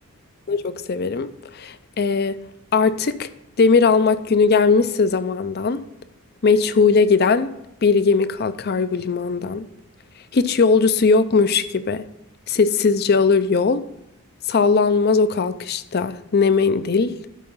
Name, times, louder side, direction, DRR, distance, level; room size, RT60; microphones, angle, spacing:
voice 1, 0.5-2.4 2.7-3.3 3.6-5.8 6.4-7.5 7.8-9.7 10.3-12.0 12.5-13.8 14.5-17.1, left 4 dB, 45° left, 0.5 m, -19 dB
12.0 x 4.8 x 5.5 m
head